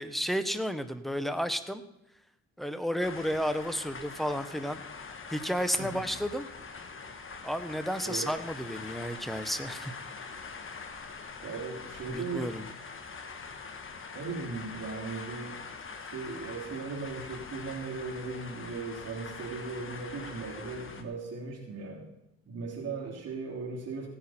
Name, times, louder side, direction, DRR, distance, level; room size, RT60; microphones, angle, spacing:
voice 1, 0.0-1.8 2.6-4.8 5.3-6.5 7.4-9.9 12.1-12.6, equal, ahead, 10 dB, 1.0 m, -32 dB
sound 1, 3.0-21.0, left 5 dB, 40° left, 1.5 m, -43 dB
voice 2, 11.4-12.5 14.1-15.6 16.0-22.1 22.5-24.1, right 4 dB, 55° right, -4 dB, 3.3 m, -38 dB
16.5 x 9.4 x 4.4 m, 0.87 s
cardioid pair, 90°, 30 cm